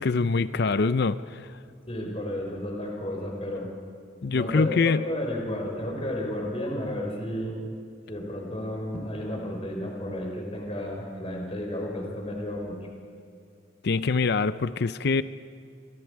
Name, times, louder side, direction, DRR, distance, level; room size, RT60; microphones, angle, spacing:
voice 1, 0.0-1.5 4.2-5.0 13.8-15.2, left 4 dB, 55° left, 14 dB, 0.5 m, -24 dB
voice 2, 1.9-3.7 4.3-7.5 8.1-12.8, left 1 dB, 30° left, 0 dB, 3.9 m, -32 dB
28.5 x 24.5 x 4.8 m, 2.4 s
head